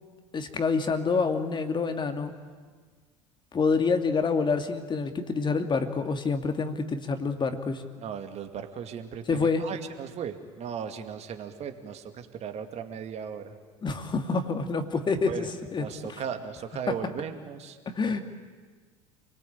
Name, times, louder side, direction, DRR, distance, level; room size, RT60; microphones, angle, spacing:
voice 1, 0.3-2.3 3.5-7.8 9.3-9.6 13.8-15.5 15.7-15.8 17.9-18.2, left 4 dB, 30° left, 7 dB, 2.4 m, -27 dB
voice 2, 8.0-13.5 15.3-15.5 15.8-17.8, right 7 dB, 40° right, 7 dB, 2.4 m, -37 dB
28.5 x 20.0 x 8.7 m, 1.5 s
hypercardioid pair, 70°, 16 cm